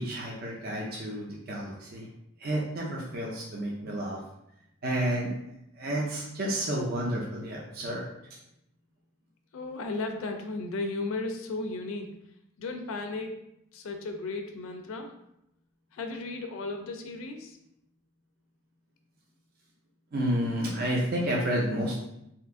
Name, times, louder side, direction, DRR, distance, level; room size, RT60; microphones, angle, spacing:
voice 1, 0.0-2.1 2.4-4.2 4.8-5.3 5.8-8.0 20.1-22.0, right 1 dB, 45° right, -3 dB, 0.5 m, -30 dB
voice 2, 9.5-12.1 12.6-13.3 13.7-15.1 15.9-17.6, left 3 dB, 70° left, 5 dB, 0.4 m, -35 dB
2.8 x 2.4 x 3.5 m, 0.81 s
head